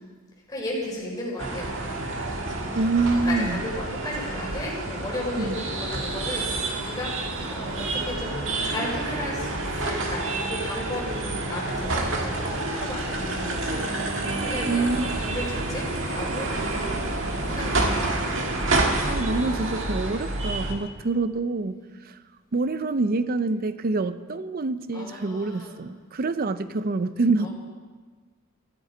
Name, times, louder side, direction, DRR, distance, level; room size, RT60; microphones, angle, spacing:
voice 1, 0.5-1.9 3.3-7.1 7.5-16.5 17.4-18.3 24.9-25.8 27.4-27.5, left 1 dB, 20° left, -4 dB, 4.1 m, -35 dB
sound 1, 1.4-20.7, right 2 dB, 65° right, 1.7 m, -28 dB
voice 2, 2.7-3.6 5.4-5.6 14.7-15.1 19.1-21.8 22.0-22.2 22.5-27.5, right 3 dB, 45° right, 13 dB, 0.5 m, -26 dB
13.5 x 12.0 x 5.0 m, 1.4 s
head